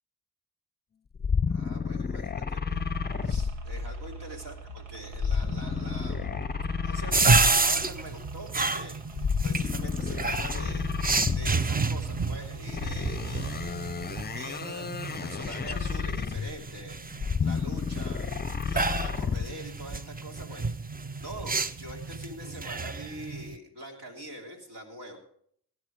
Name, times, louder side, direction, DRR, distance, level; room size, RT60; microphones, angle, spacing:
sound 1, 1.2-4.2 5.1-7.8 9.1-11.7 12.7-16.7 17.1-19.6, left 6 dB, 20° left, 0.6 m, -31 dB
voice 1, 1.5-2.8 3.2-6.5 6.8-11.0 11.3-18.3 18.6-20.7 21.0-25.2, right 1 dB, 70° right, 1 dB, 3.2 m, -44 dB
sound 2, 2.7-14.2, right 7 dB, 90° right, 1.3 m, -43 dB
sound 3, 7.1-23.6, right 3 dB, 20° right, 0.6 m, -30 dB
18.0 x 9.3 x 4.9 m, 0.65 s
supercardioid pair, 50°, 44 cm